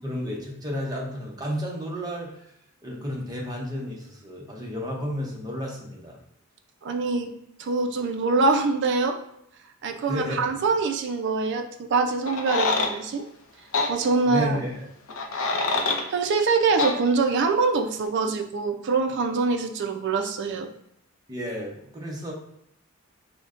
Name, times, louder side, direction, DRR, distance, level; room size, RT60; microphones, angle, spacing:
voice 1, 0.0-2.5 2.8-6.2 10.0-10.5 14.3-14.9 21.3-22.3, equal, 20° right, -2 dB, 0.7 m, -32 dB
voice 2, 6.8-7.3 7.6-9.2 9.8-13.2 13.9-14.6 16.1-20.7, right 4 dB, 55° right, 5 dB, 0.4 m, -24 dB
sound 1, 12.3-12.9 13.7-13.9 15.1-16.0 16.8-17.0, left 3 dB, 75° left, 0.5 m, -25 dB
5.1 x 2.1 x 2.4 m, 0.76 s
head